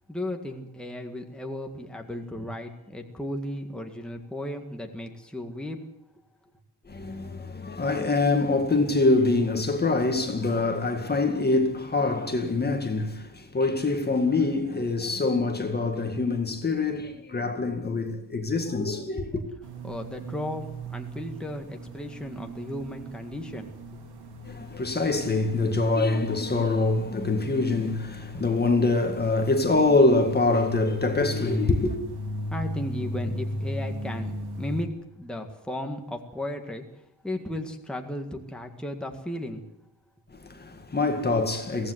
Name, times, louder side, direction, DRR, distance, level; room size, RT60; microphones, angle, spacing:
voice 1, 0.1-5.8 19.8-23.7 32.5-34.9 35.2-36.8 37.2-39.6, left 1 dB, ahead, 1.9 m, -35 dB
voice 2, 6.9-19.4 24.5-32.0 40.3-41.9, left 3 dB, 25° left, 1.9 m, -25 dB
sound 1, 19.6-34.8, equal, 70° right, 4.8 m, -37 dB
23.5 x 17.5 x 8.0 m
wide cardioid pair, 170°, 41 cm